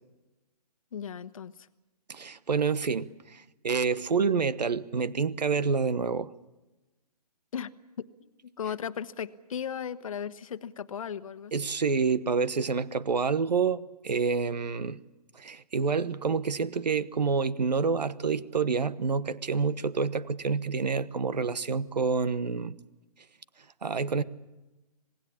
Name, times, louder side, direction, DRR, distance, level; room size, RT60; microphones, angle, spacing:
voice 1, 0.9-1.7 7.5-7.7 8.0-11.7, left 8 dB, 55° left, 12 dB, 1.2 m, -37 dB
voice 2, 2.1-6.3 11.5-15.0 15.3-22.7 23.8-24.2, right 5 dB, 90° right, 15 dB, 1.2 m, -28 dB
27.0 x 19.0 x 8.6 m, 1.1 s
hypercardioid pair, 155°, 21 cm